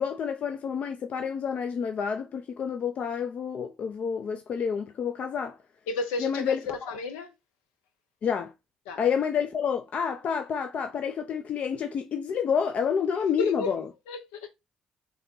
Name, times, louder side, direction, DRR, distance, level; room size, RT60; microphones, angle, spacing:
voice 1, 0.0-5.6 6.2-6.6 8.2-8.5 9.0-13.9, left 7 dB, 55° left, 0.5 m, -29 dB
voice 2, 5.9-7.3 8.9-9.0 13.4-13.7 14.1-14.5, left 3 dB, 85° left, 0.8 m, -33 dB
3.5 x 3.0 x 3.7 m
hypercardioid pair, 55°, 3 cm